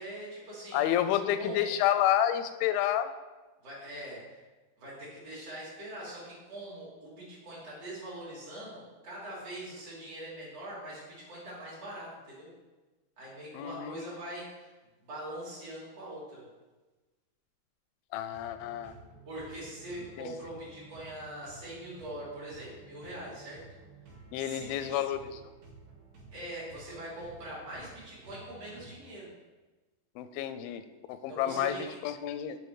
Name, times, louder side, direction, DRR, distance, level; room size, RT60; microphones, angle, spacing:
voice 1, 0.0-0.9 1.3-1.7 3.6-4.4 4.8-12.5 13.2-14.7 15.0-16.5 19.3-23.6 24.4-25.0 26.3-29.3 31.3-32.0, right 1 dB, 45° right, -8 dB, 3.9 m, -43 dB
voice 2, 0.7-3.1 13.5-14.0 18.1-18.9 20.2-20.3 24.3-25.4 30.2-30.8 31.1-32.6, left 11 dB, 90° left, 11 dB, 2.4 m, -29 dB
sound 1, 18.3-28.9, right 3 dB, 85° right, 4.0 m, -53 dB
9.3 x 5.2 x 4.8 m, 1.2 s
omnidirectional pair, 4.1 m